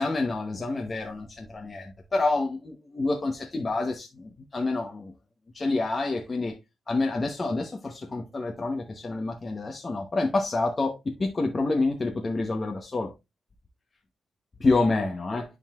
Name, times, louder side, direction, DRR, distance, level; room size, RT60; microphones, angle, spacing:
voice 1, 0.0-5.1 5.5-6.5 6.9-13.1 14.6-15.4, left 3 dB, 30° left, 0.9 m, -28 dB
10.5 x 3.9 x 2.4 m
cardioid pair, 105°, 0 cm